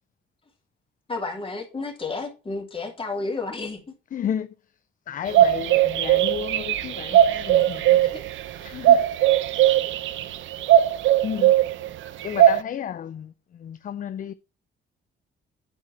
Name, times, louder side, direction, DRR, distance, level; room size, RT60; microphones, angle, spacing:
voice 1, 1.1-3.8 7.5-8.2, left 3 dB, 25° left, 2.8 m, -32 dB
voice 2, 4.1-4.5 5.1-8.1 8.6-9.0 9.6-9.8 11.2-11.5 12.2-14.3, left 9 dB, 45° left, 0.4 m, -33 dB
sound 1, 5.3-12.6, right 12 dB, 75° right, 0.7 m, -19 dB
8.9 x 4.9 x 4.6 m
cardioid pair, 90°, 20 cm